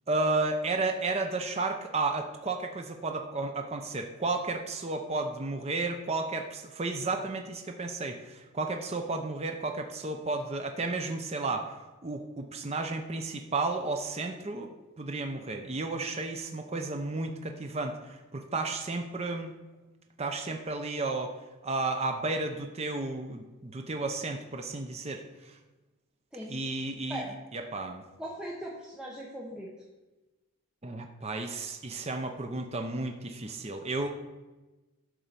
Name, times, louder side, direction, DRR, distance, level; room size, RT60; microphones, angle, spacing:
voice 1, 0.1-14.7 15.0-19.5 20.2-21.3 21.6-25.6 26.5-27.3 27.5-28.0 30.8-34.1, right 3 dB, 30° right, 4 dB, 0.6 m, -33 dB
voice 2, 28.2-29.7, equal, 5° right, -4 dB, 0.9 m, -39 dB
11.5 x 4.6 x 6.8 m, 1.1 s
head